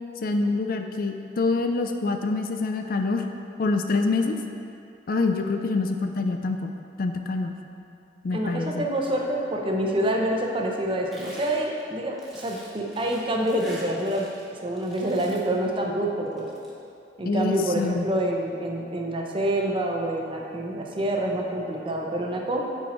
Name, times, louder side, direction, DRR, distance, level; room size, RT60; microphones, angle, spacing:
voice 1, 0.2-3.2 3.6-4.4 5.1-6.7 7.0-7.6 8.2-8.9 17.2-18.1, left 3 dB, 55° left, 5 dB, 0.4 m, -26 dB
voice 2, 8.3-14.3 14.6-16.5 17.2-22.6, right 1 dB, 30° right, 0 dB, 0.7 m, -27 dB
sound 1, 11.1-14.5 14.8-15.6 16.3-16.7, equal, ahead, 1.2 m, -46 dB
8.6 x 4.5 x 4.3 m, 2.5 s
head